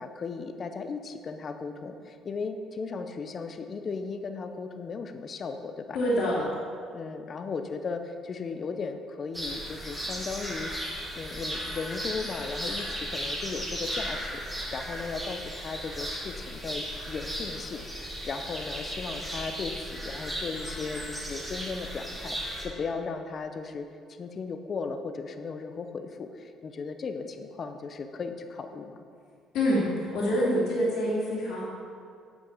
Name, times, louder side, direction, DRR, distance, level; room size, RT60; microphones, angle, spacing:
voice 1, 0.0-6.0 6.3-6.5 6.9-10.7 11.1-23.9 24.2-29.0, left 4 dB, 35° left, 7 dB, 0.6 m, -36 dB
voice 2, 5.9-6.4 29.5-29.8 30.1-31.6, equal, 70° left, -9 dB, 2.5 m, -25 dB
sound 1, 9.3-22.6, equal, 5° right, 1.7 m, -36 dB
7.9 x 6.3 x 7.1 m, 2.3 s
cardioid pair, 150°, 0 cm